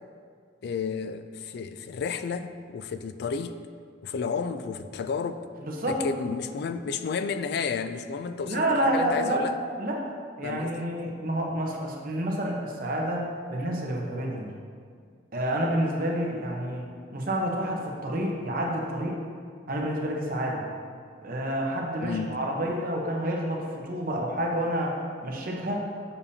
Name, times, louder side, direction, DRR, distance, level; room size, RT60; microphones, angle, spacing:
voice 1, 0.6-3.6 4.0-5.4 5.9-9.6 10.4-10.9 22.0-22.4, left 5 dB, 60° left, 10 dB, 0.3 m, -32 dB
voice 2, 5.6-6.1 8.5-9.4 9.8-10.0 10.4-14.5 15.3-19.2 19.7-20.6 21.2-26.1, right 1 dB, 50° right, -1 dB, 1.0 m, -29 dB
6.9 x 6.9 x 2.8 m, 2.1 s
head